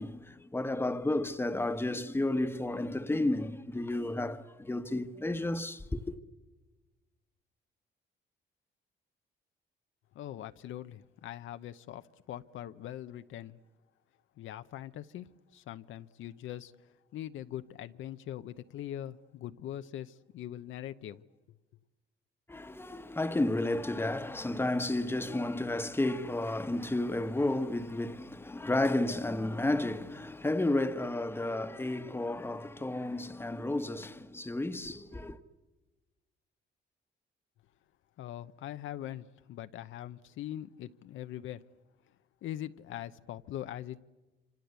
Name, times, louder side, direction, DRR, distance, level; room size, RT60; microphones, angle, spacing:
voice 1, 0.0-6.1 22.5-35.4, left 2 dB, 10° left, 1.2 m, -32 dB
voice 2, 10.1-13.6 14.4-21.2 38.2-41.6 42.4-44.0, left 12 dB, 80° left, 0.8 m, -42 dB
26.5 x 26.0 x 8.2 m
cardioid pair, 90°, 20 cm